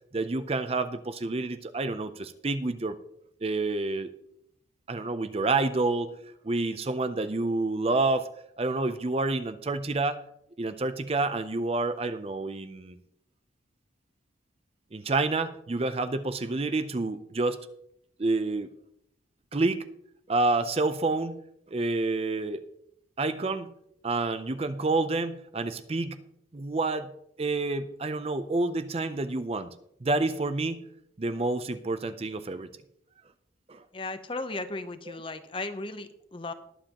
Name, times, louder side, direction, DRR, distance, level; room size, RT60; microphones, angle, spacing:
voice 1, 0.1-3.0 3.4-4.1 4.9-6.1 6.4-8.3 8.6-10.2 10.6-13.0 14.9-17.6 18.2-18.7 19.5-19.8 20.3-21.4 21.7-22.6 23.2-23.7 24.0-26.2 26.5-27.1 27.4-29.7 30.0-30.8 31.2-32.7 33.7-33.8, right 3 dB, 30° right, 11 dB, 0.5 m, -28 dB
voice 2, 33.9-36.5, left 2 dB, 25° left, 10 dB, 0.7 m, -36 dB
20.5 x 7.5 x 2.9 m, 0.76 s
head